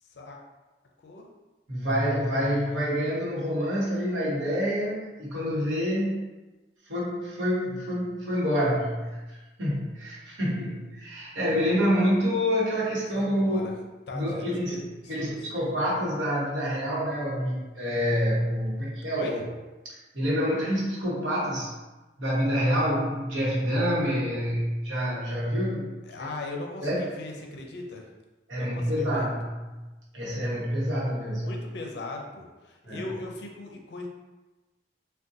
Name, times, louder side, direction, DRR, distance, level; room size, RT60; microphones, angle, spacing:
voice 1, 0.0-0.4 1.0-1.3 13.1-13.7 14.1-15.5 19.1-19.5 26.0-28.1 28.5-29.3 31.4-34.1, left 2 dB, 65° left, 1 dB, 0.5 m, -39 dB
voice 2, 1.7-6.2 6.9-13.7 14.1-19.4 20.1-21.7 22.2-25.9 26.8-27.1 28.5-29.5 30.1-31.5 32.8-33.0, equal, 85° right, -6 dB, 1.0 m, -27 dB
3.7 x 2.2 x 2.6 m, 1.2 s
head